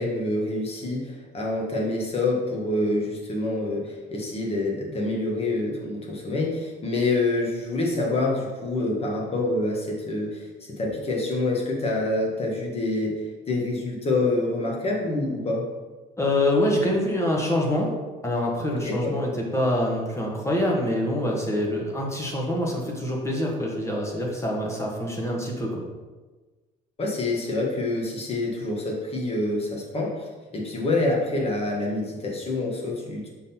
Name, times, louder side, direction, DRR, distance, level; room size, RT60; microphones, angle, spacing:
voice 1, 0.0-15.6 18.8-19.1 27.0-33.3, left 2 dB, 35° left, -1 dB, 1.6 m, -27 dB
voice 2, 16.2-17.9 18.2-25.8, left 1 dB, 15° left, -1 dB, 1.3 m, -25 dB
6.2 x 3.9 x 4.3 m, 1.3 s
cardioid pair, 110°, 17 cm